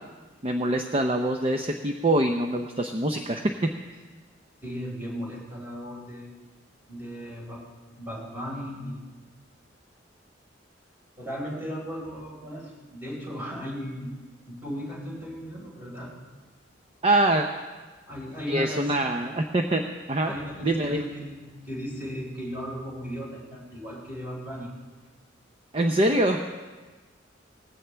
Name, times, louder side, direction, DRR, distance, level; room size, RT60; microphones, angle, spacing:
voice 1, 0.4-3.4 3.9-4.0 17.0-17.5 18.5-20.3 20.6-21.0 25.7-26.5, right 1 dB, 30° right, 4 dB, 0.6 m, -24 dB
voice 2, 4.6-6.3 6.9-7.7 8.0-9.0 11.2-14.2 14.5-16.1 18.1-19.1 20.2-24.7, equal, 10° right, -5 dB, 4.7 m, -36 dB
19.0 x 15.5 x 3.4 m, 1.3 s
head